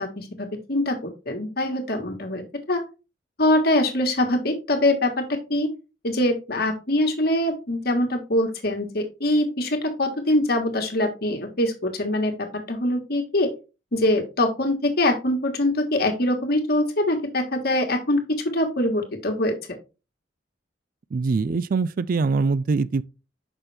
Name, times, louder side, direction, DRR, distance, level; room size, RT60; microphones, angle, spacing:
voice 1, 0.0-2.8 3.4-5.7 6.0-13.5 13.9-18.2 18.5-19.8, left 1 dB, 55° left, 1.5 m, -23 dB
voice 2, 21.1-23.0, right 4 dB, 50° right, 0.3 m, -23 dB
6.1 x 5.7 x 3.3 m
head